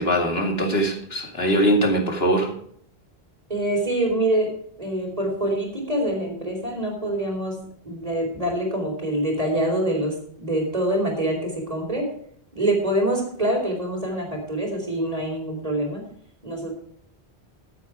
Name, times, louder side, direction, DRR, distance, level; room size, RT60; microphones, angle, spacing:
voice 1, 0.0-2.5, right 1 dB, 70° left, 3 dB, 2.6 m, -21 dB
voice 2, 3.5-4.5 4.8-7.6 7.8-12.1 12.5-16.0 16.4-16.7, right 1 dB, 35° right, 1 dB, 4.3 m, -25 dB
14.5 x 8.7 x 4.8 m, 0.62 s
omnidirectional pair, 1.1 m